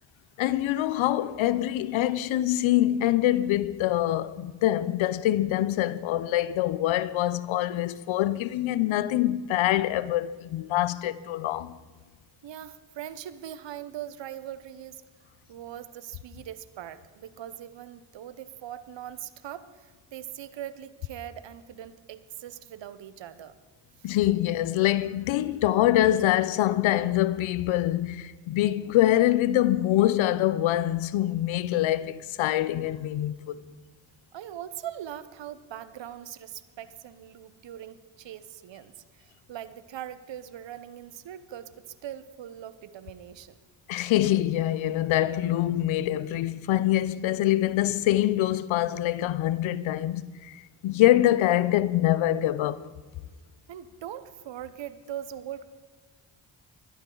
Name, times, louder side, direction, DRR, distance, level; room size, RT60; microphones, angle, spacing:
voice 1, 0.4-11.8 24.0-33.6 43.9-52.8, left 14 dB, 80° left, 0.7 m, -25 dB
voice 2, 12.4-15.0 15.5-23.6 24.0-24.2 34.3-43.6 53.7-55.7, right 11 dB, 70° right, 0.9 m, -41 dB
20.5 x 12.5 x 3.9 m
supercardioid pair, 55°, 46 cm